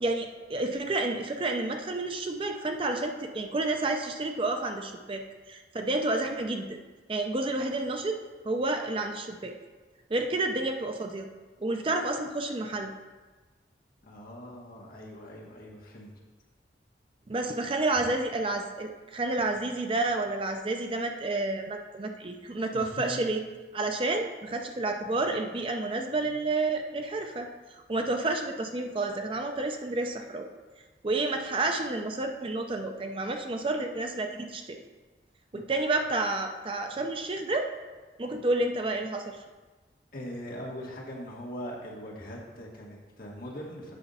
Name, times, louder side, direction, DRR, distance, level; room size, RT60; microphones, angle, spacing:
voice 1, 0.0-6.8 7.1-8.2 8.4-9.5 10.1-11.3 11.6-12.9 17.3-23.4 23.7-30.5 31.0-34.8 35.5-37.7 38.2-39.4, right 2 dB, 30° right, 4 dB, 0.5 m, -30 dB
voice 2, 14.0-16.1 18.0-18.1 22.7-23.2 35.5-35.7 40.1-44.0, equal, 55° left, -3 dB, 1.6 m, -41 dB
8.3 x 4.4 x 5.5 m, 1.3 s
head